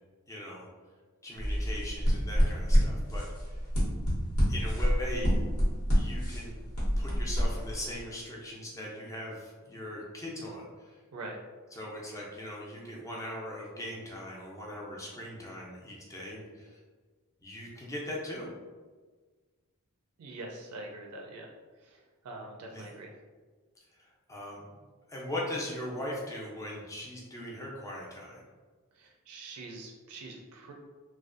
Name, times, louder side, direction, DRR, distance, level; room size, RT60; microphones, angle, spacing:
voice 1, 0.3-0.7 1.2-3.6 4.5-5.3 5.9-6.6 7.0-11.0 11.7-16.8 17.4-18.5 22.7-22.9 24.0-24.8 25.1-28.4, left 1 dB, 15° left, -3 dB, 0.5 m, -40 dB
sound 1, 1.4-8.0, equal, 75° left, 1.0 m, -28 dB
voice 2, 20.2-21.5 21.8-23.1 28.9-30.7, right 2 dB, 80° right, 0 dB, 0.4 m, -44 dB
2.5 x 2.2 x 2.4 m, 1.4 s
head